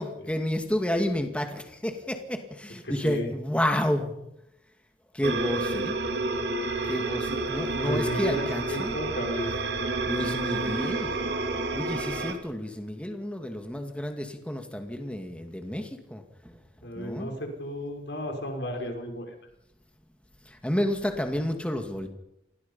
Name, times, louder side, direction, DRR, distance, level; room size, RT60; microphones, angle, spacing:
voice 1, 0.0-4.1 5.1-6.0 6.8-9.0 10.1-11.1 11.7-16.6 16.9-17.3 20.4-22.1, left 1 dB, 5° left, 5 dB, 2.2 m, -30 dB
voice 2, 2.8-3.3 7.8-9.5 16.8-19.3, equal, 75° left, 3 dB, 5.8 m, -33 dB
sound 1, 5.2-12.3, right 2 dB, 70° right, 3.0 m, -30 dB
29.0 x 21.0 x 5.6 m, 0.85 s
head